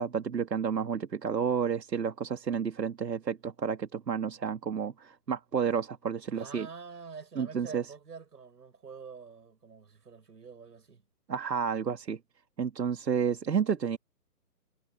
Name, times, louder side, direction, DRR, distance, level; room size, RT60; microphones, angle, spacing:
voice 1, 0.0-6.7 7.4-7.8 11.3-12.2 12.6-14.0, right 7 dB, 90° right, 2.2 m, -31 dB
voice 2, 6.3-11.0, right 5 dB, 75° right, 6.2 m, -46 dB
hypercardioid pair, 175°, 48 cm